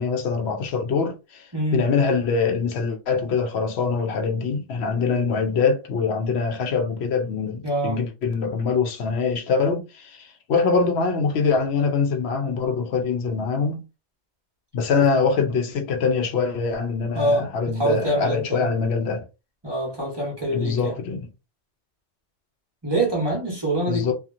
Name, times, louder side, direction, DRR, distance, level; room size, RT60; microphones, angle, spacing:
voice 1, 0.0-13.8 14.7-19.3 20.5-21.3 23.9-24.1, left 5 dB, 70° left, 0.8 m, -24 dB
voice 2, 1.5-1.8 7.6-8.0 15.0-15.1 17.1-18.7 19.6-21.0 22.8-24.1, right 1 dB, 25° right, 0.8 m, -25 dB
2.8 x 2.4 x 2.4 m
omnidirectional pair, 1.2 m